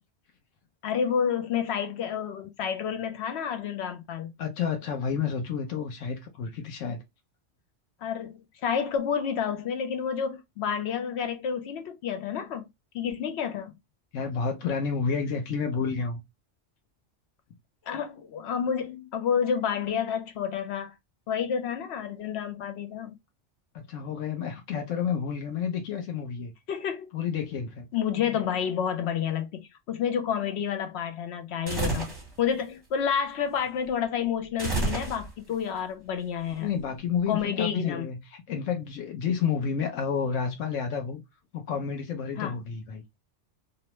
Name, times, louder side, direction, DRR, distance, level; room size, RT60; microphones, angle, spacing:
voice 1, 0.8-4.3 8.0-12.6 12.9-13.7 17.9-20.9 21.3-23.2 26.7-27.1 27.9-32.1 32.4-36.7 37.3-38.1 42.4-42.5, left 7 dB, 65° left, 0.8 m, -29 dB
voice 2, 4.4-7.0 14.1-16.2 23.7-26.5 27.1-27.9 36.6-41.2 41.5-43.0, left 6 dB, 85° left, 1.0 m, -30 dB
sound 1, 31.7-32.3 34.6-35.5, right 3 dB, 20° right, 1.0 m, -29 dB
2.7 x 2.1 x 2.9 m
omnidirectional pair, 1.3 m